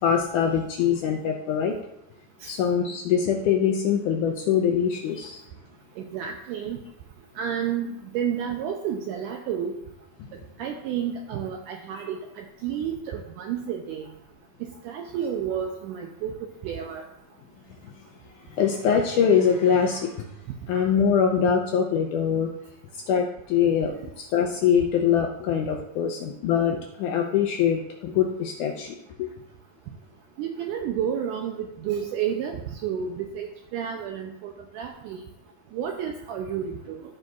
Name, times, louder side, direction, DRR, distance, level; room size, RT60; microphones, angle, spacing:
voice 1, 0.0-1.7 2.4-5.4 17.8-17.9 18.5-20.1 20.7-22.5 23.1-29.3, left 7 dB, 80° left, 2 dB, 1.8 m, -23 dB
voice 2, 6.0-6.8 7.4-9.8 10.6-14.1 14.8-16.3 16.6-17.0 30.4-35.2 35.7-37.0, right 8 dB, 90° right, 3 dB, 1.8 m, -31 dB
15.5 x 5.2 x 2.4 m, 0.84 s
omnidirectional pair, 4.2 m